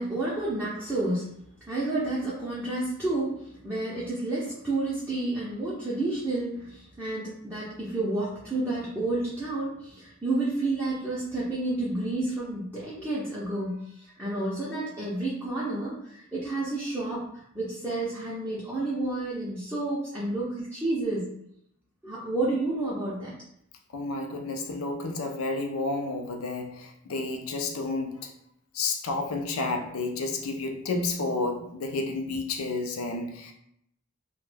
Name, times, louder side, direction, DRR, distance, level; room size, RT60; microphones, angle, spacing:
voice 1, 0.0-1.3 1.7-17.3 17.5-21.3 22.0-23.3, right 2 dB, 10° right, -9 dB, 0.5 m, -30 dB
voice 2, 23.9-28.3 28.7-33.5, left 3 dB, 75° left, 3 dB, 0.4 m, -31 dB
2.2 x 2.1 x 3.2 m, 0.73 s
head